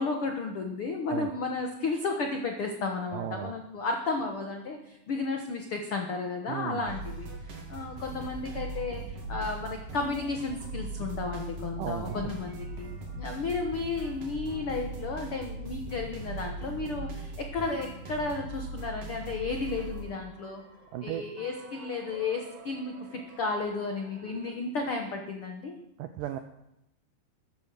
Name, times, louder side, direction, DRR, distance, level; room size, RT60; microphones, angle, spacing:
voice 1, 0.0-7.3 7.7-9.0 9.3-12.9 13.2-20.6 21.0-25.7, left 3 dB, 85° left, 3 dB, 1.2 m, -33 dB
voice 2, 3.1-3.5 6.5-6.9 11.8-12.3 20.9-21.2 26.0-26.4, right 11 dB, 85° right, 9 dB, 1.9 m, -35 dB
sound 1, 6.9-24.5, right 2 dB, 60° right, 3.8 m, -40 dB
14.0 x 10.5 x 6.3 m, 0.86 s
omnidirectional pair, 4.5 m